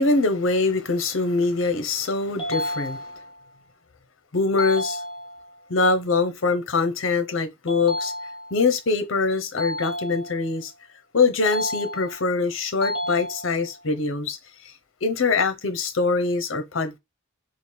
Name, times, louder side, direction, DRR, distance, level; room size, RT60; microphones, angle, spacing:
voice 1, 0.0-3.1 4.3-5.0 5.7-8.1 8.5-10.7 11.1-14.4 15.0-17.0, left 3 dB, 65° left, 0.7 m, -23 dB
sound 1, 2.4-3.4 4.6-5.6 7.7-8.7 9.6-10.6 11.4-12.4 12.8-13.8, left 1 dB, 25° left, 1.0 m, -31 dB
3.8 x 2.4 x 3.2 m
head